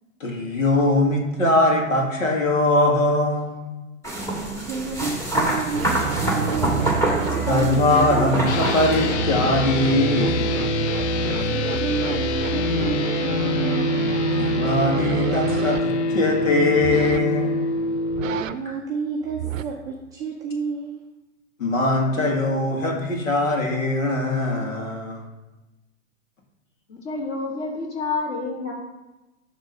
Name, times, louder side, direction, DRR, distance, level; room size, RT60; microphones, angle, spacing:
voice 1, 0.2-3.6 7.5-10.8 11.8-11.9 14.3-17.7 21.6-25.2, left 2 dB, 75° left, 0 dB, 2.1 m, -21 dB
sound 1, 4.0-9.1, right 1 dB, 5° left, 1.7 m, -25 dB
voice 2, 4.3-7.2 11.4-14.1 18.3-21.0, right 5 dB, 10° right, -4 dB, 0.4 m, -31 dB
sound 2, 5.7-15.8 16.8-17.3 18.1-18.6 19.2-19.6, right 10 dB, 75° right, 0.6 m, -28 dB
sound 3, 8.4-18.4, left 3 dB, 55° left, 0.7 m, -25 dB
voice 3, 26.9-28.7, left 3 dB, 30° left, -1 dB, 2.4 m, -28 dB
10.5 x 3.6 x 5.2 m, 1.1 s
hypercardioid pair, 120°, 40 cm